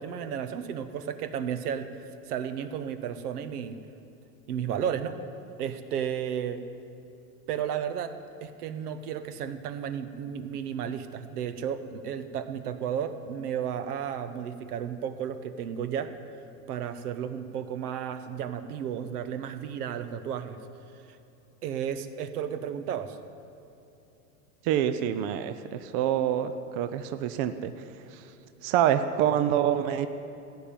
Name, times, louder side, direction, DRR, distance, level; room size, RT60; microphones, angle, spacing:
voice 1, 0.0-1.9 2.3-3.8 4.5-5.2 5.6-6.6 7.5-8.2 8.4-16.1 16.7-20.6 21.6-23.2, right 8 dB, 70° right, 10 dB, 1.0 m, -33 dB
voice 2, 24.6-27.7 28.1-28.2 28.6-30.1, right 10 dB, 35° right, 11 dB, 0.5 m, -26 dB
15.0 x 5.5 x 9.0 m, 2.7 s
hypercardioid pair, 120°, 47 cm